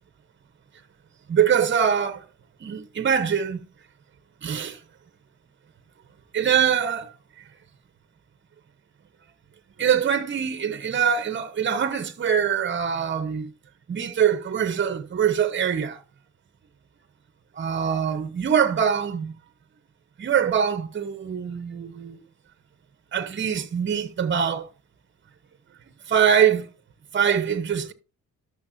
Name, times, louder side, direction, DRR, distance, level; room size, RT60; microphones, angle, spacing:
voice 1, 1.3-2.2 2.6-3.6 4.4-4.8 6.3-7.1 9.8-13.5 13.9-16.0 17.5-19.3 20.2-22.2 23.1-24.7 26.1-26.7 27.1-27.9, right 8 dB, 40° right, 1.1 m, -23 dB
13.0 x 6.6 x 2.8 m
cardioid pair, 90°, 30 cm